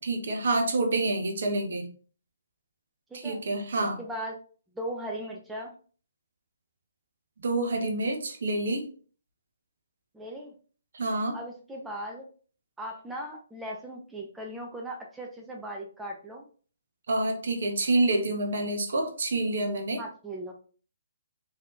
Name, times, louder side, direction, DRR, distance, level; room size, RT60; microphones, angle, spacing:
voice 1, 0.0-1.9 3.1-4.0 7.4-8.9 10.9-11.4 17.1-20.0, right 2 dB, 60° right, 5 dB, 0.7 m, -27 dB
voice 2, 4.0-4.4 4.7-5.7 10.1-10.5 11.3-12.2 12.8-16.4 20.0-20.5, right 1 dB, 5° right, 0 dB, 0.4 m, -38 dB
3.4 x 2.7 x 2.3 m, 0.41 s
figure-of-eight pair, 135°, 0 cm